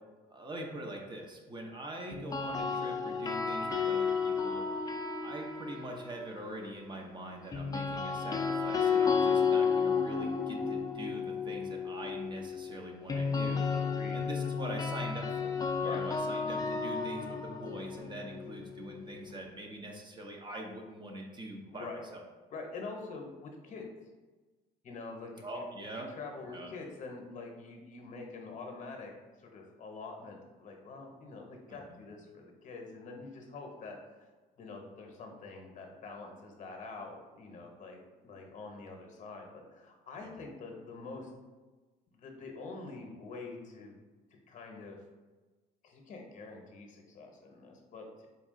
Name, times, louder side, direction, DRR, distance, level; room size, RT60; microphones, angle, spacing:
voice 1, 0.3-4.7 5.2-13.7 14.1-22.2 25.4-26.1 26.4-26.7 31.7-32.0 40.2-40.3, right 1 dB, 25° right, 1 dB, 0.6 m, -43 dB
sound 1, 2.1-6.3 7.5-19.4, left 5 dB, 20° left, 0.4 m, -32 dB
voice 2, 13.7-14.2 15.8-16.1 21.7-22.0 22.5-23.9 24.8-25.6 25.9-29.1 29.4-34.0 34.6-41.3 42.1-44.0 44.3-45.0 45.8-48.3, left 3 dB, 50° left, 2 dB, 0.8 m, -45 dB
4.1 x 2.3 x 3.6 m, 1.3 s
cardioid pair, 110°, 17 cm